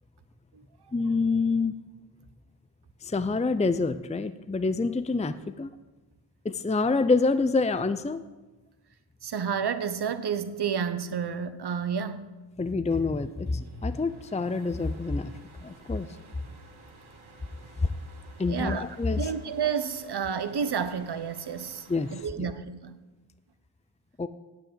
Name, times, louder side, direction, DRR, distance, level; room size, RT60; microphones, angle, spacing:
voice 1, 0.9-1.8 3.0-5.7 6.4-8.2 12.6-15.3 15.6-16.1 18.4-19.3 21.9-22.5 24.2-24.3, left 3 dB, 15° left, 0.6 m, -27 dB
voice 2, 9.2-12.3 18.5-18.9 19.2-23.0, right 7 dB, 50° right, 1.1 m, -30 dB
sound 1, 12.9-22.2, right 2 dB, 70° right, 2.5 m, -53 dB
9.1 x 7.7 x 8.8 m
supercardioid pair, 45°, 49 cm